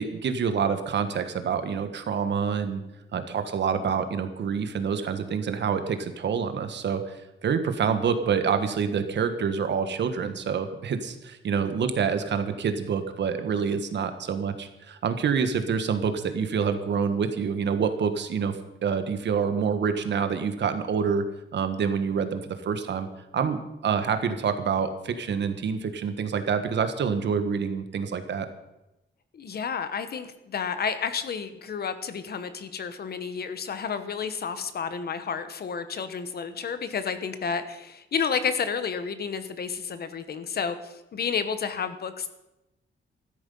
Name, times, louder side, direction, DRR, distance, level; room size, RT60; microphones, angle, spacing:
voice 1, 0.0-2.8 3.1-7.2 7.4-18.6 18.8-21.2 21.5-23.1 23.3-28.5, right 6 dB, 60° right, 9 dB, 1.4 m, -27 dB
voice 2, 29.3-42.3, left 6 dB, 50° left, 11 dB, 1.1 m, -31 dB
14.5 x 12.5 x 5.5 m, 0.94 s
wide cardioid pair, 175°, 21 cm